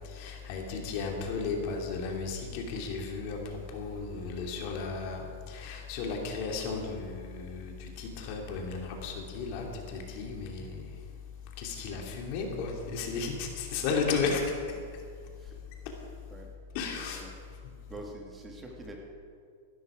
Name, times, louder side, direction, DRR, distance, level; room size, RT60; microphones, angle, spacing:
voice 1, 0.1-3.4 3.7-5.2 5.5-10.7 11.6-14.4 16.7-17.2, left 5 dB, 50° left, 1 dB, 2.7 m, -34 dB
voice 2, 17.9-18.9, right 2 dB, 15° right, 1 dB, 1.7 m, -45 dB
16.5 x 12.5 x 5.0 m, 2.2 s
supercardioid pair, 150°, 0 cm